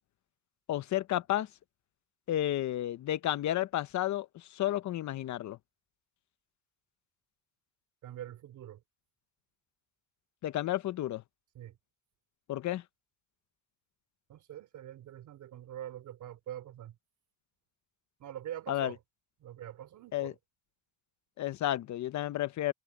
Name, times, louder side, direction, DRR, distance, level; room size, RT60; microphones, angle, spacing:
voice 1, 0.7-1.5 2.3-5.6 10.4-11.2 12.5-12.8 18.7-18.9 20.1-20.3 21.4-22.7, left 13 dB, 70° left, 0.9 m, -32 dB
voice 2, 8.0-8.8 11.5-11.8 14.3-16.9 18.2-19.0 19.4-20.3, right 11 dB, 80° right, 3.0 m, -44 dB
cardioid pair, 90°, 30 cm